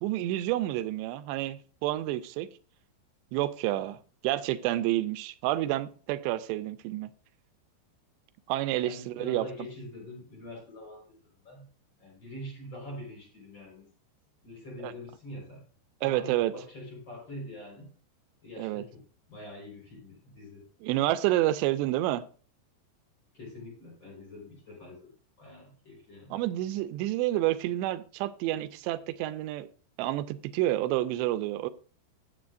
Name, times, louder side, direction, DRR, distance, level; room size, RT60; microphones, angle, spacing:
voice 1, 0.0-2.5 3.3-4.0 4.2-7.1 8.5-9.5 14.8-14.9 16.0-16.5 18.6-18.8 20.8-22.2 26.3-29.7 30.0-31.7, right 15 dB, 85° right, 2.8 m, -29 dB
voice 2, 8.8-11.7 12.0-13.9 14.4-15.6 16.0-17.9 18.4-19.0 19.3-20.6 23.3-25.1 25.4-26.4, left 1 dB, 25° left, 4.8 m, -44 dB
15.5 x 7.6 x 2.5 m
omnidirectional pair, 5.0 m